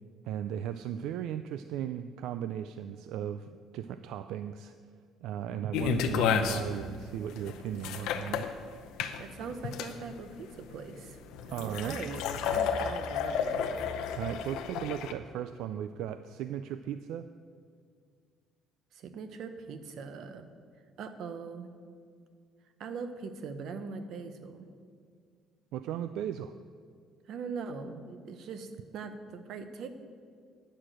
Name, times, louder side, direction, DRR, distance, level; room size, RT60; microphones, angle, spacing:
voice 1, 0.2-4.7 5.2-8.5 9.0-9.1 11.5-12.0 14.2-17.3 25.7-26.5, right 10 dB, 75° right, 11 dB, 0.3 m, -36 dB
sound 1, 5.7-15.1, left 7 dB, 80° left, 0.7 m, -32 dB
voice 2, 9.2-11.2 11.5-13.8 18.9-20.5 21.0-21.7 22.8-24.7 27.3-29.9, right 5 dB, 55° right, 9 dB, 0.8 m, -41 dB
10.0 x 6.4 x 7.6 m, 2.1 s
cardioid pair, 165°, 0 cm